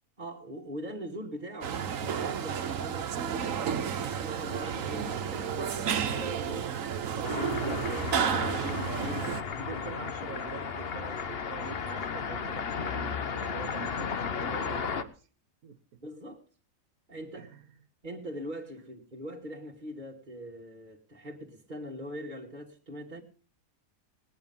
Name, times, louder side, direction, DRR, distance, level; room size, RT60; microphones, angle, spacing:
voice 1, 0.2-6.7 7.1-10.1 16.0-16.4 17.1-17.5 18.0-23.2, equal, 35° right, 1.9 m, -42 dB
sound 1, 1.6-9.4, right 7 dB, 70° right, 1.4 m, -31 dB
sound 2, 7.2-15.0, left 6 dB, 50° left, 1.1 m, -34 dB
voice 2, 9.2-15.3 15.6-15.8 17.3-17.6, right 8 dB, 85° right, 1.4 m, -45 dB
19.0 x 9.7 x 5.4 m
omnidirectional pair, 1.5 m